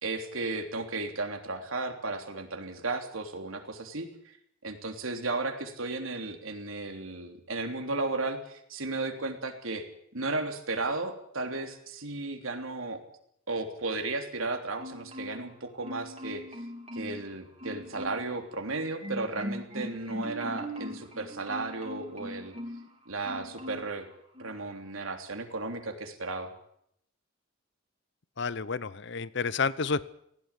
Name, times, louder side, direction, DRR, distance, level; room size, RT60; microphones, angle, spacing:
voice 1, 0.0-4.3 4.6-9.9 10.1-13.0 13.5-16.4 16.9-22.5 23.0-24.1 24.4-26.5, right 3 dB, 85° right, 5 dB, 3.3 m, -34 dB
Marimba xylophone, 14.8-15.6 15.8-17.3 17.6-18.3 18.7-22.9 23.2-24.0 24.3-24.6, equal, 30° right, 2.9 m, -40 dB
voice 2, 28.4-30.1, left 5 dB, 60° left, 18 dB, 0.8 m, -30 dB
18.5 x 16.5 x 9.8 m, 0.72 s
head